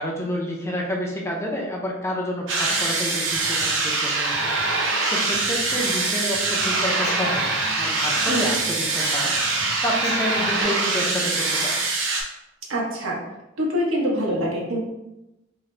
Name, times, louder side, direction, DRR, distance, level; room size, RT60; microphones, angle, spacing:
voice 1, 0.0-4.3 4.8-9.3 9.8-11.8, equal, 15° left, -1 dB, 0.5 m, -29 dB
sound 1, 2.5-12.2, right 3 dB, 70° right, 0.7 m, -24 dB
Human voice / Acoustic guitar, 2.6-10.6, left 1 dB, 60° left, 1.0 m, -40 dB
voice 2, 12.7-13.2 13.6-14.8, equal, 90° right, -3 dB, 1.0 m, -24 dB
3.7 x 2.6 x 3.2 m, 0.94 s
head